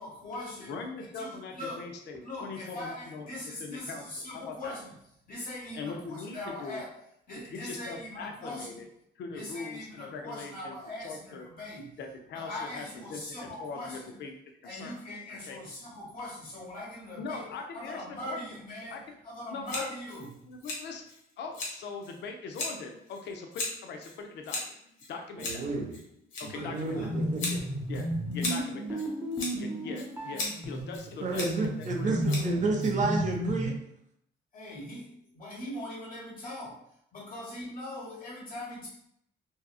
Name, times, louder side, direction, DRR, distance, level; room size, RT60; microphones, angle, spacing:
voice 1, 0.0-0.7 1.1-1.8 2.2-4.9 5.3-6.9 7.3-8.8 9.3-12.0 12.3-14.1 14.6-19.0 19.2-20.4 26.5-27.1 34.5-36.8 37.1-38.9, left 1 dB, 45° left, -5 dB, 1.4 m, -41 dB
voice 2, 0.6-3.3 3.6-4.0 4.5-4.8 5.7-6.8 7.5-8.9 9.2-10.8 11.0-11.5 12.0-14.3 14.7-15.0 15.3-15.6 17.2-18.4 18.9-19.0 19.5-19.8 20.4-21.1 21.4-24.8 25.1-25.6 26.4-27.1 27.9-29.0 29.6-32.4, left 4 dB, 60° left, 4 dB, 0.4 m, -41 dB
Scissors, 19.7-33.4, left 2 dB, 80° left, 0.9 m, -39 dB
voice 3, 25.4-26.0 26.4-27.6 31.2-33.7, right 3 dB, 40° right, 1 dB, 0.6 m, -31 dB
sound 1, 26.9-33.8, equal, 10° right, 0.8 m, -33 dB
2.7 x 2.3 x 2.3 m, 0.73 s
cardioid pair, 90°, 20 cm